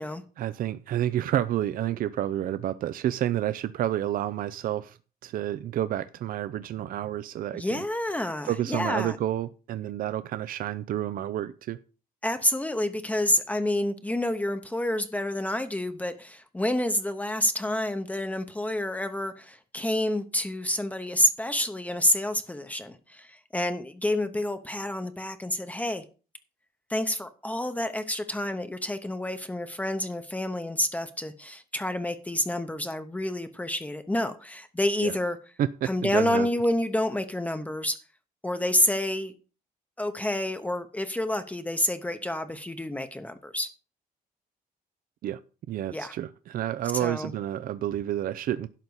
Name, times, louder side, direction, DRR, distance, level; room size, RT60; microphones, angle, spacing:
voice 1, 0.4-5.0 5.2-7.8 8.5-11.8 35.0-35.2 35.6-36.5 45.2-45.4 45.7-48.7, right 12 dB, 65° right, 0.5 m, -29 dB
voice 2, 7.5-9.2 12.2-26.0 26.9-35.4 35.8-38.0 38.4-39.3 40.0-43.7 45.9-46.1 46.9-47.3, left 1 dB, 10° left, 0.8 m, -28 dB
11.5 x 4.1 x 8.0 m
cardioid pair, 150°, 15 cm